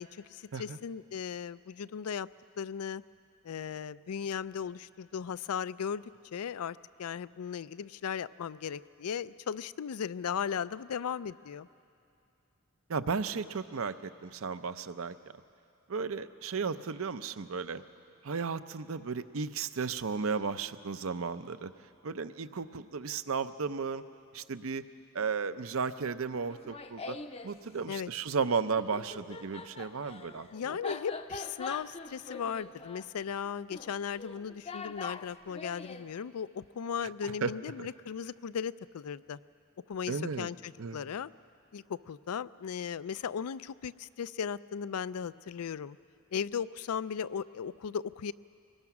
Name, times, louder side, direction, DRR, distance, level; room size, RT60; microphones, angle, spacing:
voice 1, 0.0-2.3 2.6-3.0 3.4-6.0 6.3-11.7 27.9-28.1 30.5-39.4 39.9-41.3 41.7-46.0 46.3-48.3, left 7 dB, 85° left, 17 dB, 0.4 m, -37 dB
voice 2, 12.9-15.1 15.9-17.8 18.2-21.7 22.0-24.0 24.3-24.8 25.1-27.2 27.4-30.5 37.2-37.5 37.8-37.9 40.1-40.5 40.8-41.0, right 5 dB, 70° right, 12 dB, 0.6 m, -34 dB
Laughter, 26.5-27.5 28.8-36.1, left 3 dB, 25° left, 0.6 m, -43 dB
25.0 x 21.0 x 6.0 m, 2.5 s
head